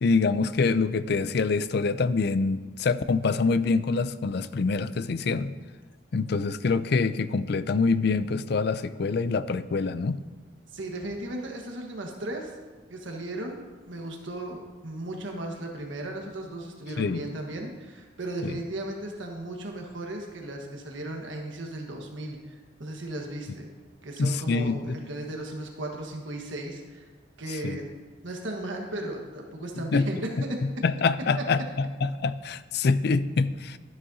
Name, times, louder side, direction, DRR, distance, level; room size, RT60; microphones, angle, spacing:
voice 1, 0.0-5.5 6.1-10.2 17.0-17.3 18.4-18.6 24.2-25.0 27.6-27.8 29.8-30.1 30.8-33.8, left 4 dB, 55° left, 14 dB, 0.4 m, -25 dB
voice 2, 10.7-12.5 12.9-23.7 24.0-27.1 27.4-27.9 28.2-30.6 31.4-31.5, right 1 dB, 90° right, 1 dB, 1.4 m, -36 dB
13.0 x 10.5 x 2.8 m, 1.3 s
head